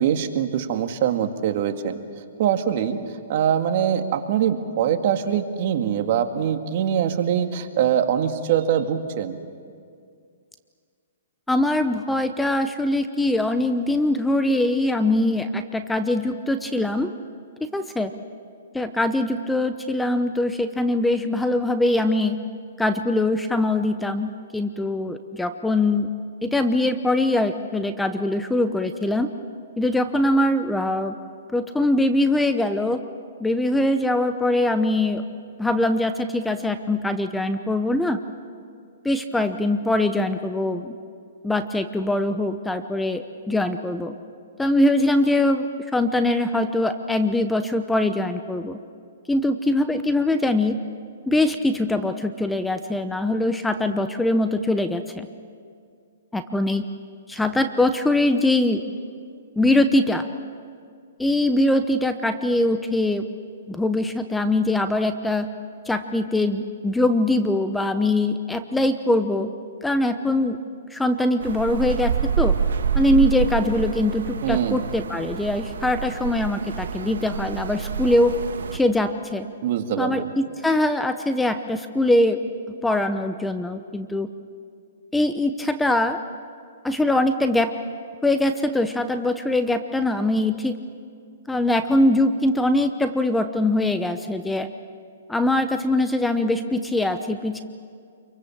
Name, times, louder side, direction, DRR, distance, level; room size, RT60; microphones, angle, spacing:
voice 1, 0.0-1.9 2.4-3.0 3.3-9.4 74.4-74.8 79.6-80.3, right 9 dB, 50° right, 6 dB, 1.9 m, -23 dB
voice 2, 11.5-17.1 17.7-18.1 18.7-22.4 22.8-26.1 26.4-29.3 29.8-31.2 31.5-33.0 33.4-35.2 35.6-38.2 39.0-40.9 41.4-44.1 44.6-45.7 45.9-48.8 49.3-50.8 51.3-55.3 56.3-56.8 57.3-58.8 59.6-60.3 61.2-63.2 63.7-65.5 65.9-69.5 69.8-70.6 70.9-72.1 72.4-72.6 72.9-78.3 78.7-79.5 80.0-82.4 82.8-84.3 85.1-86.2 86.8-87.7 88.2-90.7 91.5-94.7 95.3-97.6, left 1 dB, 5° left, 9 dB, 0.8 m, -22 dB
sound 1, 71.4-78.8, right 6 dB, 80° right, 1.6 m, -27 dB
27.5 x 23.5 x 7.4 m, 2.2 s
hypercardioid pair, 140°, 0 cm